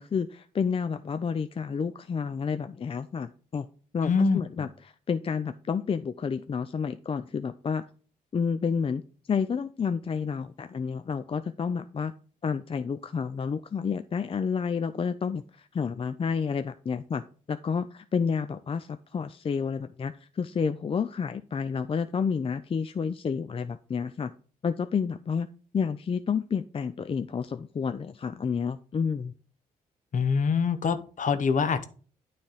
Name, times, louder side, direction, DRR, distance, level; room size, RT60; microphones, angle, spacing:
voice 1, 0.0-3.7 3.9-4.7 5.1-7.8 8.3-9.0 9.3-12.1 12.4-17.2 17.5-24.3 24.6-25.5 25.7-29.3, left 6 dB, 35° left, 10 dB, 0.5 m, -30 dB
voice 2, 4.0-4.7 30.1-31.8, left 5 dB, 55° left, 11 dB, 0.9 m, -25 dB
9.3 x 3.4 x 5.6 m, 0.40 s
supercardioid pair, 60°, 16 cm